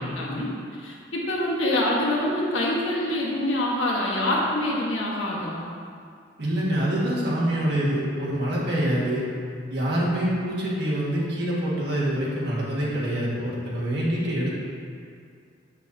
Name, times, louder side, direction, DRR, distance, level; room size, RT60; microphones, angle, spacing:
voice 1, 0.0-5.7, left 1 dB, 85° left, -4 dB, 1.4 m, -26 dB
voice 2, 6.4-9.2 9.7-14.5, right 1 dB, 60° right, -6 dB, 1.7 m, -25 dB
8.0 x 6.3 x 2.7 m, 2.3 s
head